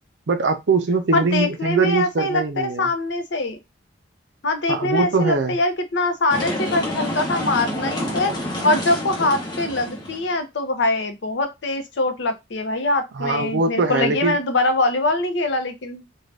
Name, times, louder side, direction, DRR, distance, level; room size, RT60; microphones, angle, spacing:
voice 1, 0.3-2.9 4.7-5.6 13.1-14.4, right 3 dB, 70° right, 0.5 m, -22 dB
voice 2, 1.1-2.4 2.8-3.6 4.4-8.3 8.6-16.0, left 2 dB, 75° left, 0.6 m, -23 dB
sound 1, 6.3-10.3, left 1 dB, 25° left, 0.8 m, -28 dB
2.6 x 2.3 x 3.2 m
head